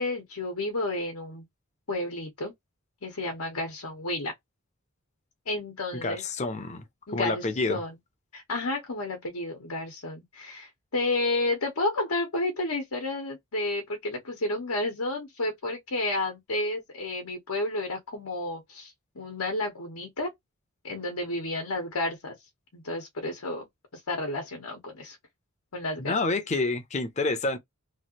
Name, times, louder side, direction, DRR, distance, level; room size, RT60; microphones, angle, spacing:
voice 1, 0.0-1.4 1.9-2.5 3.0-4.3 5.5-6.2 7.1-8.0 8.3-20.3 20.8-22.4 22.7-23.7 23.9-25.2 25.7-26.1, left 2 dB, 80° left, 1.0 m, -31 dB
voice 2, 6.0-6.8 7.1-7.8 26.0-27.6, left 2 dB, 30° left, 0.6 m, -28 dB
3.1 x 2.5 x 2.9 m
head